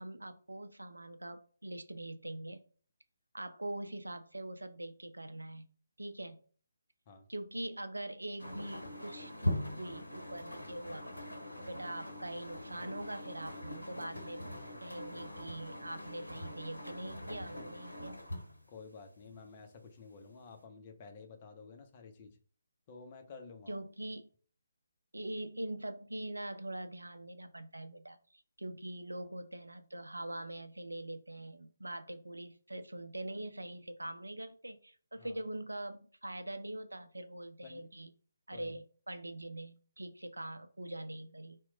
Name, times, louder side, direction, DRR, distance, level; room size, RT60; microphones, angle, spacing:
voice 1, 0.0-2.6 3.3-5.7 6.0-6.4 7.3-11.1 11.6-14.5 14.8-18.2 23.7-24.3 25.1-38.1 38.5-41.6, right 1 dB, 80° right, 9 dB, 0.4 m, -43 dB
sound 1, 8.4-19.7 20.2-20.6, left 1 dB, 80° left, 0.7 m, -42 dB
voice 2, 18.7-22.4 22.9-23.8 35.2-35.4 37.6-37.9 38.5-38.8, left 4 dB, 30° left, 5 dB, 0.6 m, -52 dB
2.9 x 2.1 x 3.7 m, 0.43 s
figure-of-eight pair, 145°, 0 cm